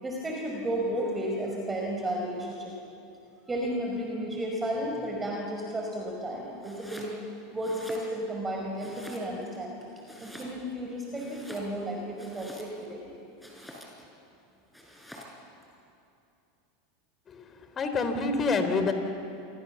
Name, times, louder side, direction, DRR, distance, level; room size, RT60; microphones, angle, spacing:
voice 1, 0.0-2.8 3.5-7.2 7.5-9.9 10.2-13.2, right 1 dB, 15° right, -1 dB, 5.3 m, -33 dB
Domestic sounds home sounds, 6.6-7.2 7.5-8.4 8.8-9.6 10.0-10.8 11.1-12.9 13.4-14.1 14.7-15.4, equal, 5° left, 6.7 m, -47 dB
voice 2, 17.8-18.9, left 4 dB, 30° left, 8 dB, 3.8 m, -27 dB
29.5 x 24.5 x 7.3 m, 2.6 s
hypercardioid pair, 85°, 0 cm